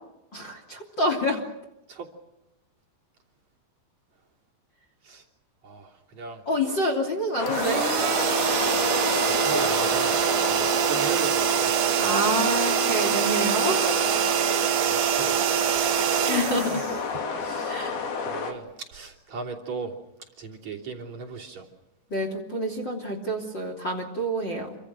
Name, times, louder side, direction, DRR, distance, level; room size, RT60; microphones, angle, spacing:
voice 1, 0.3-1.4 6.4-7.8 12.0-14.1 16.3-16.9 17.7-18.0 22.1-24.8, equal, 30° left, 2 dB, 3.2 m, -27 dB
voice 2, 5.6-6.4 9.2-10.1 10.5-11.9 14.0-14.2 14.4-15.7 17.4-17.8 18.2-19.9 20.4-21.6, right 4 dB, 40° right, -2 dB, 4.0 m, -37 dB
sound 1, 7.4-18.5, left 5 dB, 60° left, 4.5 m, -30 dB
sound 2, 7.5-17.4, right 11 dB, 85° right, 1.8 m, -24 dB
28.0 x 25.5 x 6.3 m, 0.93 s
omnidirectional pair, 5.2 m